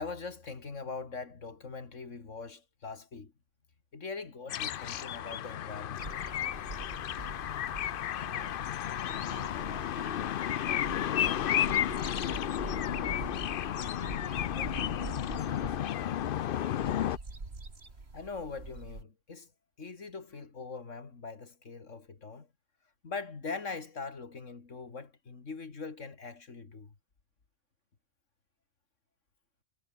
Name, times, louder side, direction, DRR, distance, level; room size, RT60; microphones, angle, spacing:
voice 1, 0.0-3.3 3.9-6.0 18.1-19.5 19.8-22.5 23.0-26.9, left 4 dB, 80° left, 2.6 m, -42 dB
sound 1, 4.5-17.2, left 11 dB, 55° left, 0.7 m, -32 dB
sound 2, 6.0-19.0, right 3 dB, 55° right, 3.1 m, -45 dB
voice 2, 8.2-8.6 9.0-11.2 11.7-13.2 13.6-16.0, right 2 dB, 75° right, 5.7 m, -52 dB
omnidirectional pair, 1.3 m